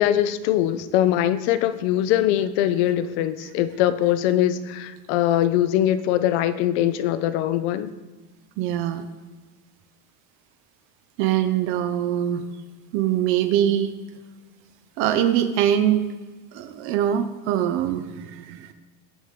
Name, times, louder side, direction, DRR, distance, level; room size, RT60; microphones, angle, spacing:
voice 1, 0.0-7.9, left 12 dB, 45° left, 0.7 m, -22 dB
voice 2, 8.6-9.0 11.2-12.4 12.9-13.9 15.0-16.1 16.5-18.7, right 10 dB, 30° right, 0.5 m, -23 dB
22.0 x 7.3 x 3.6 m
supercardioid pair, 170°, 45 cm